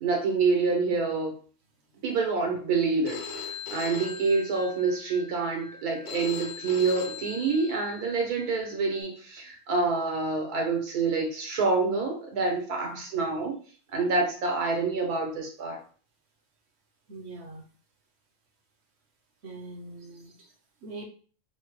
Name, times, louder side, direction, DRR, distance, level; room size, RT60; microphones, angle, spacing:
voice 1, 0.0-1.3 2.0-3.2 3.7-13.6 13.9-15.8, right 4 dB, 90° right, 2 dB, 1.6 m, -27 dB
Telephone, 3.1-9.0, left 6 dB, 70° left, 0.4 m, -41 dB
voice 2, 17.1-17.7 19.4-20.5 20.8-21.0, right 2 dB, 55° right, 2 dB, 0.8 m, -42 dB
5.3 x 2.2 x 3.1 m, 0.42 s
omnidirectional pair, 1.6 m